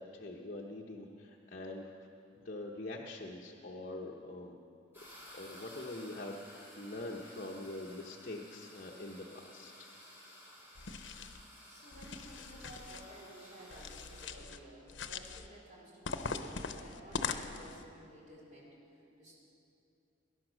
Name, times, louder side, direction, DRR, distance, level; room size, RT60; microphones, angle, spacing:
voice 1, 0.0-1.9 2.3-4.6 5.3-9.9, left 2 dB, 45° left, -2 dB, 1.0 m, -44 dB
sound 1, 4.9-14.3, equal, 10° right, 5.0 m, -55 dB
sound 2, 10.7-11.4 11.9-13.0 13.7-14.6 14.9-15.5 16.0-17.8, left 5 dB, 75° left, 0.8 m, -41 dB
voice 2, 11.7-18.8 19.2-19.3, right 1 dB, 40° right, -5 dB, 4.5 m, -54 dB
20.0 x 11.0 x 6.2 m, 2.7 s
head